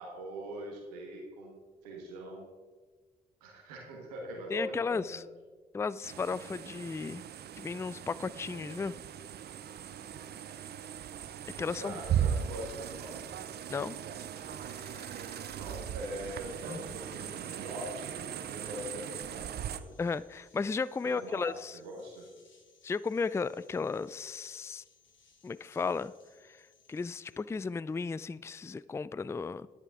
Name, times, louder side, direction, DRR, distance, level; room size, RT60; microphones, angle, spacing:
voice 1, 0.0-2.5 3.4-5.2 11.6-13.2 15.4-19.9 21.0-22.3, right 1 dB, 90° right, 0 dB, 1.5 m, -42 dB
voice 2, 4.5-5.2 5.7-7.2 7.6-9.0 11.6-11.9 13.7-14.0 14.9-15.4 16.7-16.8 20.0-21.8 22.8-24.8 25.4-26.1 26.5-26.6 26.9-29.7, left 4 dB, 15° left, 19 dB, 0.3 m, -34 dB
sound 1, 6.0-19.8, right 9 dB, 55° right, 0.6 m, -38 dB
sound 2, 14.5-27.4, left 5 dB, 75° left, 2.8 m, -65 dB
10.5 x 10.0 x 3.6 m, 1.4 s
hypercardioid pair, 40°, 20 cm